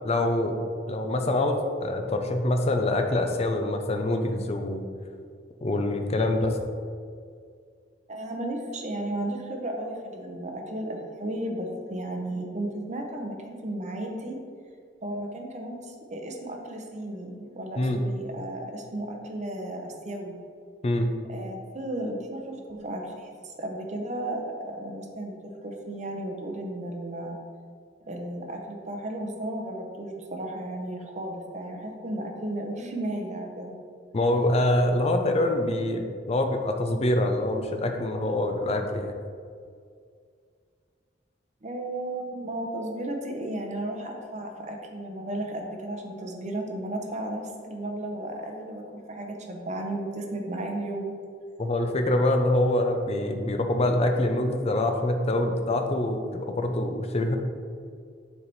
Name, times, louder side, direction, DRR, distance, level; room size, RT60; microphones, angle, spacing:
voice 1, 0.0-0.6 0.9-4.8 5.6-6.6 17.8-18.0 20.8-21.1 34.1-36.0 36.3-39.1 51.6-57.4, left 1 dB, 35° left, 5 dB, 0.5 m, -25 dB
voice 2, 8.1-14.4 15.0-20.4 21.3-27.4 28.1-33.7 41.6-51.1, right 1 dB, 40° right, 2 dB, 0.7 m, -34 dB
7.1 x 3.4 x 4.1 m, 2.1 s
head